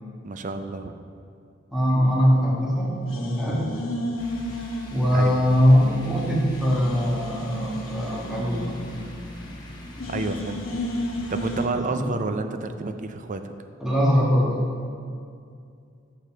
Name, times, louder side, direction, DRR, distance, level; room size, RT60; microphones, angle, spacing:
voice 1, 0.2-0.9 5.1-5.4 10.1-10.6 11.3-13.5, right 3 dB, 40° right, 8 dB, 0.5 m, -29 dB
voice 2, 1.7-3.7 4.9-8.8 11.9-12.1 13.8-14.6, equal, ahead, -5 dB, 1.7 m, -21 dB
sound 1, 2.0-2.7 3.1-5.7 6.0-6.1 6.5-9.6 10.0-11.7, left 1 dB, 85° left, 1.0 m, -34 dB
sound 2, 4.2-11.7, left 1 dB, 20° left, 1.1 m, -42 dB
6.8 x 6.5 x 6.5 m, 2.4 s
head